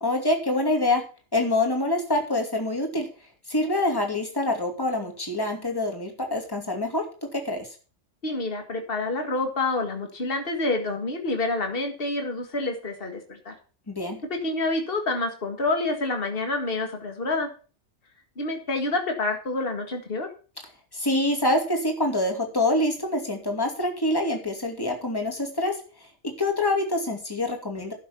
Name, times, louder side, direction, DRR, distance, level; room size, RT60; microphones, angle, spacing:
voice 1, 0.0-1.0 1.3-3.1 3.5-7.0 7.3-7.7 13.9-14.2 20.9-25.8 26.4-27.9, left 1 dB, 20° left, 3 dB, 2.6 m, -25 dB
voice 2, 8.2-13.5 14.4-17.5 18.4-20.3, left 2 dB, 50° left, 4 dB, 2.1 m, -28 dB
11.5 x 6.5 x 7.0 m, 0.37 s
omnidirectional pair, 1.2 m